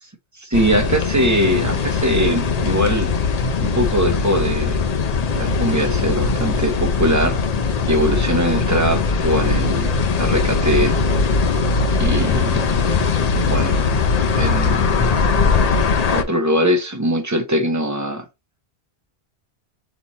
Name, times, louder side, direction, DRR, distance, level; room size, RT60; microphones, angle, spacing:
voice 1, 0.4-3.1 3.6-4.8 5.3-7.4 7.9-9.9 10.2-10.9 12.0-12.7 13.2-13.9 14.3-15.1 16.1-18.2, equal, 20° right, 0.7 m, -21 dB
sound 1, 0.5-16.2, left 4 dB, 45° left, 0.6 m, -20 dB
4.2 x 3.0 x 4.0 m
omnidirectional pair, 1.1 m